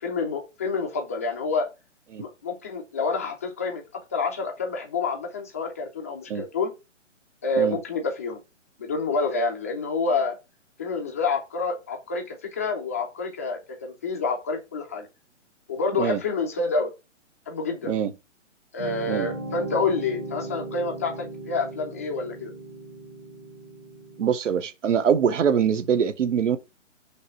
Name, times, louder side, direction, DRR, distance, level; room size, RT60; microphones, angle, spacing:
voice 1, 0.0-1.7 2.2-3.8 4.1-6.7 7.4-8.4 8.8-10.3 10.8-15.1 15.7-16.9 17.5-17.9 18.7-22.5, left 3 dB, 15° left, 0.4 m, -28 dB
sound 1, 18.8-24.3, right 2 dB, 40° right, 1.9 m, -37 dB
voice 2, 24.2-26.6, right 7 dB, 70° right, 0.9 m, -23 dB
5.5 x 3.2 x 5.5 m
hypercardioid pair, 155°, 38 cm